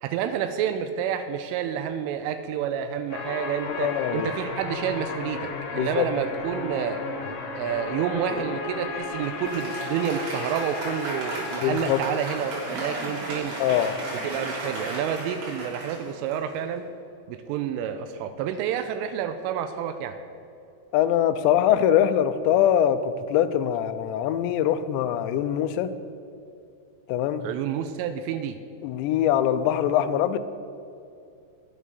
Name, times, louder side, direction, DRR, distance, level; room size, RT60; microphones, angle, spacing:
voice 1, 0.0-7.0 7.6-13.6 14.1-16.9 17.3-20.2 27.4-28.6, right 8 dB, 85° right, 9 dB, 3.1 m, -29 dB
sound 1, 3.1-13.4, left 4 dB, 70° left, 2.2 m, -35 dB
voice 2, 3.7-4.3 5.8-6.1 11.6-12.0 13.6-13.9 20.9-25.9 27.1-27.4 28.8-30.4, left 10 dB, 90° left, 10 dB, 2.5 m, -23 dB
Applause, 9.2-16.8, right 1 dB, 70° right, 6.0 m, -35 dB
11.0 x 10.0 x 6.8 m, 2.5 s
omnidirectional pair, 5.8 m